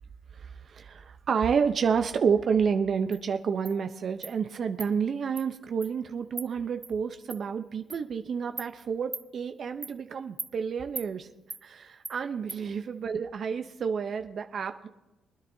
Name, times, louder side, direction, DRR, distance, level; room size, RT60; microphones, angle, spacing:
voice 1, 0.3-11.3 11.6-14.9, right 6 dB, 55° right, 7 dB, 0.7 m, -29 dB
Insect, 3.1-3.2 3.7-3.8 4.2-4.3 4.8-4.9 5.4-5.5 5.8-5.9 6.4-6.5 6.8-6.9 7.3-7.4 7.9-8.0 8.6-8.7 9.1-9.3 9.8-10.0 10.4-10.5 11.0-11.1 11.5-11.6 12.0-12.2 12.5-12.6, right 3 dB, 20° right, 0.7 m, -38 dB
24.0 x 9.8 x 2.7 m, 0.99 s
cardioid pair, 90°, 0 cm